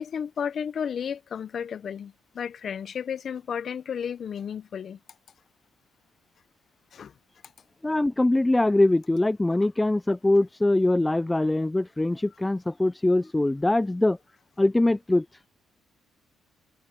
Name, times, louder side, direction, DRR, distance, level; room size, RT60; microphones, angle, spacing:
voice 1, 0.0-5.0 6.9-7.1, left 7 dB, 55° left, 0.7 m, -33 dB
voice 2, 7.8-14.2 14.6-15.3, left 2 dB, 15° left, 0.3 m, -23 dB
cardioid pair, 90°, 0 cm